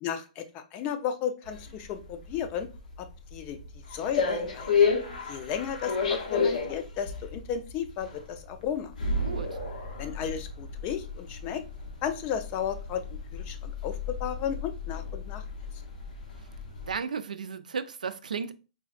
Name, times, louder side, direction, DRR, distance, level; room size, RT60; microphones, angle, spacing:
voice 1, 0.0-2.7 3.0-3.6 3.9-4.7 5.3-8.9 10.0-11.6 12.0-15.4, left 8 dB, 35° left, 0.5 m, -34 dB
sound 1, 1.5-16.9, left 5 dB, 80° left, 0.9 m, -32 dB
voice 2, 9.2-9.6 16.9-18.5, right 6 dB, 90° right, 0.3 m, -34 dB
3.9 x 2.4 x 2.4 m
hypercardioid pair, 130°, 4 cm